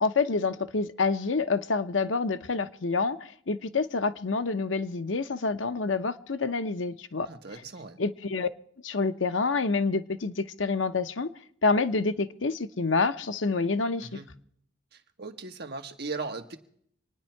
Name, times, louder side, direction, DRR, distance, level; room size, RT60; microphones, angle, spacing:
voice 1, 0.0-3.2 3.5-7.3 8.0-8.5 8.8-11.3 11.6-14.1, left 4 dB, 75° left, 10 dB, 0.8 m, -27 dB
voice 2, 7.3-8.0 14.0-14.3 14.9-16.6, right 3 dB, 55° right, 5 dB, 1.4 m, -38 dB
26.0 x 9.8 x 4.5 m, 0.65 s
head